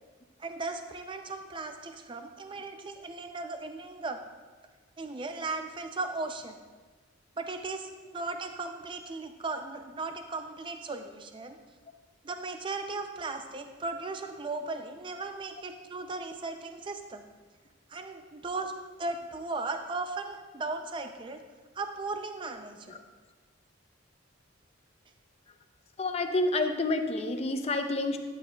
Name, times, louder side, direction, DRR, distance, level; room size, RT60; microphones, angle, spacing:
voice 1, 0.4-4.2 5.0-6.6 7.4-11.6 12.2-17.2 17.9-18.7 19.0-21.4 21.7-23.0, right 3 dB, 25° right, 7 dB, 0.4 m, -37 dB
voice 2, 26.0-28.2, left 2 dB, 30° left, 6 dB, 0.5 m, -29 dB
11.5 x 8.3 x 2.2 m, 1.4 s
head